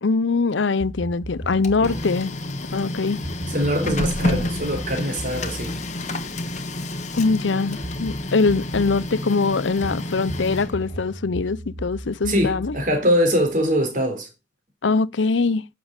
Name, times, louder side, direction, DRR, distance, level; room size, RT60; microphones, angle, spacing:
voice 1, 0.0-2.4 2.7-3.2 7.1-12.8 14.8-15.7, left 4 dB, 85° left, 0.7 m, -22 dB
sound 1, 0.8-2.1 3.2-6.9 7.8-9.1 9.8-13.7, right 1 dB, 85° right, 4.5 m, -36 dB
Printer, 1.4-11.1, left 1 dB, 40° left, 1.5 m, -30 dB
voice 2, 3.5-5.8 12.3-14.3, equal, 45° right, 4.0 m, -23 dB
10.5 x 6.9 x 9.0 m
head